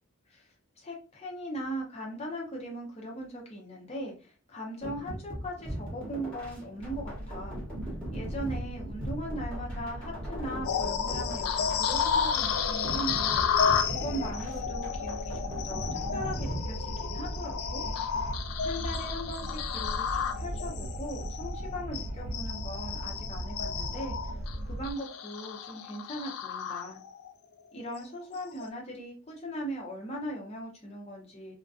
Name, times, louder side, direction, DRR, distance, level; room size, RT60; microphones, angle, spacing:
voice 1, 0.3-7.6 8.1-17.8 18.6-24.3 24.6-27.0 27.7-31.5, equal, 30° left, -1 dB, 0.6 m, -39 dB
sound 1, 4.8-17.4, right 1 dB, 5° left, 0.9 m, -40 dB
sound 2, 6.8-24.9, right 1 dB, 60° right, 0.4 m, -38 dB
sound 3, 10.6-27.3 27.8-28.0 28.5-28.7, left 7 dB, 90° left, 0.3 m, -32 dB
2.4 x 2.2 x 2.4 m, 0.35 s
head